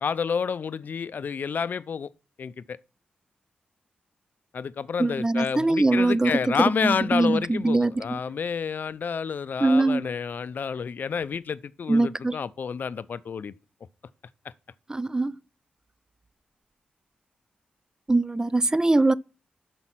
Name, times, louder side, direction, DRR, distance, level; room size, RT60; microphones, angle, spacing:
voice 1, 0.0-2.1 2.4-2.8 4.5-13.5, left 6 dB, 65° left, 0.4 m, -29 dB
voice 2, 5.0-8.2 9.6-10.1 11.9-12.4 14.9-15.4 18.1-19.1, right 2 dB, 20° right, 0.3 m, -22 dB
6.0 x 5.5 x 6.0 m
supercardioid pair, 40°, 3 cm